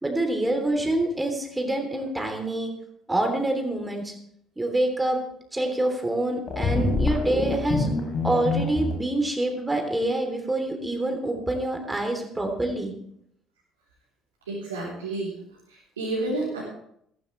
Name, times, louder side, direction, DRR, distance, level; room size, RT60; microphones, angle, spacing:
voice 1, 0.0-2.7 3.1-4.1 4.6-5.2 5.5-7.9 8.2-12.9, right 1 dB, 15° right, 3 dB, 3.5 m, -26 dB
sound 1, 6.5-8.9, left 3 dB, 45° left, 4.1 m, -26 dB
voice 2, 14.4-15.3 15.7-16.6, right 2 dB, 80° right, -7 dB, 3.6 m, -30 dB
15.5 x 15.0 x 3.4 m, 0.71 s
figure-of-eight pair, 50°, 0 cm